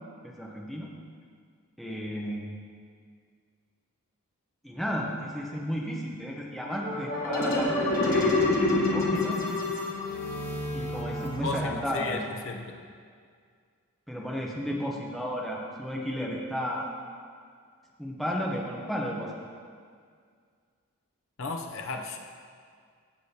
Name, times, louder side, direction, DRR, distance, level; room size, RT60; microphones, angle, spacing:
voice 1, 0.2-0.9 1.8-2.5 4.6-9.4 10.7-12.2 14.1-16.9 18.0-19.3, equal, ahead, -2 dB, 0.7 m, -33 dB
sound 1, 6.6-12.0, left 2 dB, 40° left, 1.2 m, -28 dB
voice 2, 11.4-12.8 21.4-22.2, left 3 dB, 60° left, 3 dB, 0.6 m, -34 dB
14.5 x 6.2 x 2.8 m, 2.1 s
head